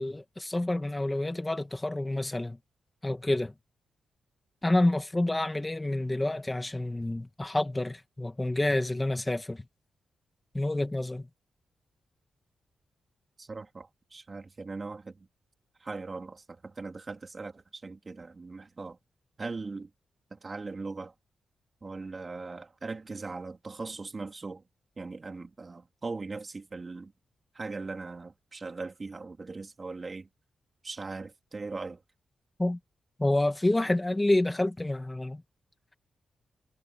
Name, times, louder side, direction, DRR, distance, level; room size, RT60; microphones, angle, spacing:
voice 1, 0.0-2.6 3.0-3.5 4.6-9.6 10.5-11.3 32.6-32.8 33.2-35.4, left 1 dB, 10° left, 1.7 m, -28 dB
voice 2, 13.4-15.2 15.8-19.0 19.4-19.9 20.3-21.1 21.8-24.6 25.0-27.1 27.5-30.3 30.8-32.0, right 3 dB, 30° right, 3.5 m, -39 dB
wide cardioid pair, 150°, 0 cm